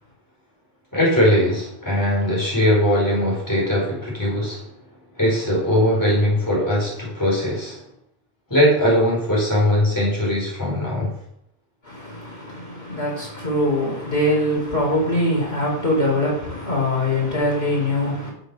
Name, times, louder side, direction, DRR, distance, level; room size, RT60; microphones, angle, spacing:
voice 1, 0.9-4.7 5.2-7.8 8.5-11.1, equal, 20° left, 4.8 m, -20 dB
voice 2, 11.8-18.3, left 1 dB, 80° left, 4.8 m, -22 dB
11.5 x 7.8 x 4.9 m
omnidirectional pair, 1.0 m